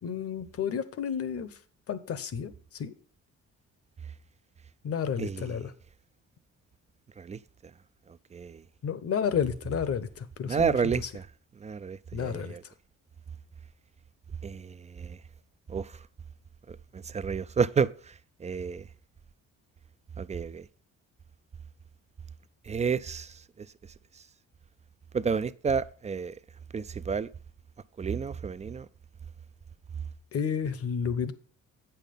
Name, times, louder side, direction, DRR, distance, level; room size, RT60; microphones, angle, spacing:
voice 1, 0.0-1.6 1.9-2.9 4.8-5.7 8.8-11.1 12.1-12.7 30.3-31.3, left 7 dB, 50° left, 0.9 m, -31 dB
voice 2, 5.2-5.5 7.2-7.4 8.3-8.6 10.4-11.3 11.6-12.6 14.4-15.2 15.7-16.0 16.7-18.1 18.4-18.9 20.2-20.7 22.6-23.7 25.1-26.4 26.7-27.3 28.0-28.9, right 6 dB, 25° right, 0.3 m, -30 dB
8.2 x 5.8 x 5.2 m
cardioid pair, 90°, 30 cm